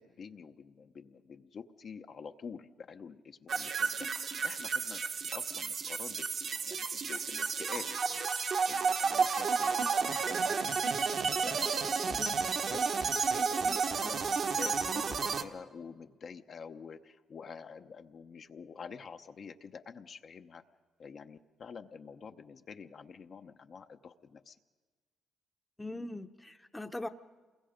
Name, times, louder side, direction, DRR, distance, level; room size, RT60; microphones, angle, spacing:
voice 1, 0.0-5.1 5.3-6.3 6.6-10.8 11.3-12.3 12.7-20.6 21.0-24.6, left 5 dB, 50° left, 6 dB, 0.8 m, -48 dB
sound 1, 3.5-15.4, right 5 dB, 55° right, 1.2 m, -32 dB
voice 2, 25.8-27.1, left 1 dB, 10° left, 8 dB, 0.8 m, -41 dB
28.0 x 22.0 x 5.1 m, 1.4 s
cardioid pair, 90°, 0 cm